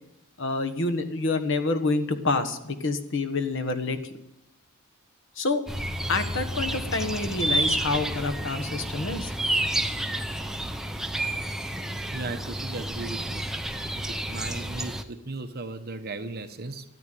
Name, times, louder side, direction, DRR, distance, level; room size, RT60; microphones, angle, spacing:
voice 1, 0.4-4.0 5.4-5.6 6.1-9.3, left 3 dB, 55° left, 7 dB, 1.3 m, -27 dB
sound 1, 5.7-15.0, right 1 dB, ahead, 0.7 m, -30 dB
voice 2, 12.1-13.5 13.9-16.8, right 3 dB, 45° right, 8 dB, 1.1 m, -36 dB
13.5 x 9.6 x 9.3 m, 0.87 s
head